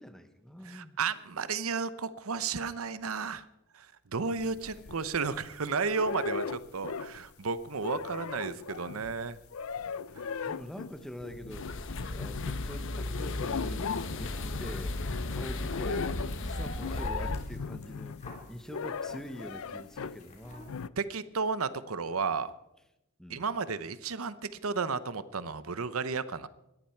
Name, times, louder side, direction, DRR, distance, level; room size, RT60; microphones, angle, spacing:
voice 1, 0.0-1.0 10.4-11.7 12.1-15.0 15.3-18.2 18.5-20.8 23.2-23.5, equal, 5° left, 9 dB, 1.2 m, -44 dB
voice 2, 0.6-3.4 3.7-3.9 4.1-9.4 21.0-22.5 23.3-26.5, right 5 dB, 80° right, 15 dB, 0.8 m, -33 dB
sound 1, 4.4-5.4 5.8-7.3 7.6-20.2 20.7-20.9, left 5 dB, 80° left, 0.5 m, -38 dB
sound 2, 11.5-17.5, left 2 dB, 60° left, 1.2 m, -36 dB
sound 3, 12.9-20.7, left 1 dB, 35° left, 3.5 m, -51 dB
21.0 x 14.0 x 4.6 m, 0.88 s
head